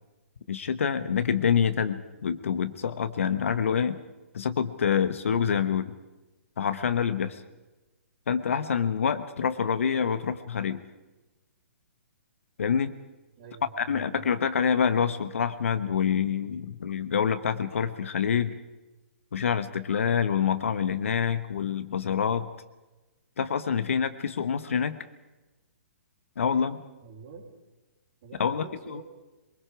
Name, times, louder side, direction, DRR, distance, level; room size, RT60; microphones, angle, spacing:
voice 1, 0.5-4.0 4.3-5.9 6.6-7.4 8.3-10.8 12.6-12.9 13.8-18.5 19.3-22.5 23.4-25.0 26.4-26.8 28.4-29.0, left 7 dB, 60° left, 11 dB, 1.1 m, -26 dB
voice 2, 13.4-14.3 15.1-15.2 27.0-27.5 28.2-29.0, right 4 dB, 45° right, -6 dB, 4.1 m, -46 dB
23.5 x 22.5 x 4.9 m, 1.1 s
figure-of-eight pair, 125°, 8 cm